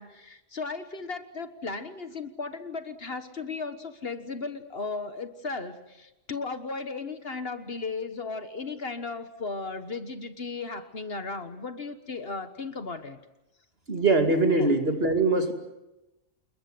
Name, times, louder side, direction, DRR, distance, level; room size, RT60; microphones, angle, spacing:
voice 1, 0.0-13.2 14.6-14.7, left 4 dB, 50° left, 10 dB, 1.6 m, -36 dB
voice 2, 13.9-15.5, right 2 dB, 50° right, 5 dB, 2.9 m, -22 dB
28.5 x 21.5 x 7.8 m, 0.95 s
omnidirectional pair, 1.3 m